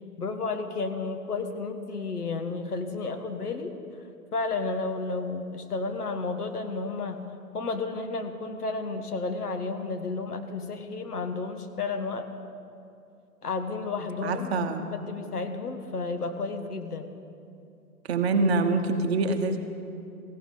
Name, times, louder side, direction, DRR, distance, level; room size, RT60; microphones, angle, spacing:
voice 1, 0.2-3.8 4.3-7.2 7.5-12.3 13.4-17.1, left 3 dB, 70° left, 7 dB, 1.3 m, -32 dB
voice 2, 14.2-14.9 18.1-19.6, right 3 dB, 40° right, 7 dB, 1.1 m, -25 dB
17.5 x 16.0 x 3.9 m, 2.6 s
figure-of-eight pair, 125°, 47 cm